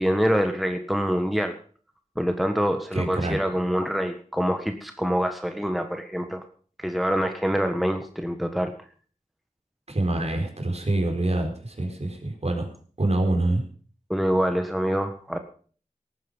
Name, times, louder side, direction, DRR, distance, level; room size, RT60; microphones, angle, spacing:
voice 1, 0.0-1.6 2.2-6.4 6.8-8.7 14.1-15.4, equal, ahead, 5 dB, 1.5 m, -25 dB
voice 2, 2.9-3.4 9.9-12.7 13.0-13.6, right 2 dB, 50° right, 3 dB, 4.5 m, -25 dB
19.0 x 9.2 x 5.5 m, 0.43 s
wide cardioid pair, 60°, 14 cm